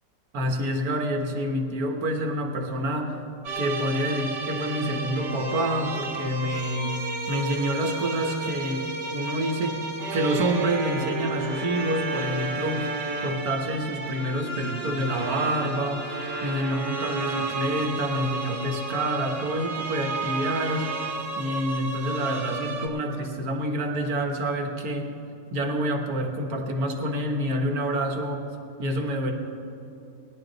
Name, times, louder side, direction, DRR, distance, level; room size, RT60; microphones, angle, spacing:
voice 1, 0.3-3.2 3.5-9.8 10.1-12.9 13.2-16.1 16.4-20.9 21.4-25.0 25.5-28.4 28.8-29.3, right 1 dB, 60° right, 3 dB, 1.6 m, -27 dB
sound 1, 3.4-22.9, right 2 dB, 80° right, 1.8 m, -32 dB
17.5 x 11.0 x 3.9 m, 2.7 s
omnidirectional pair, 1.8 m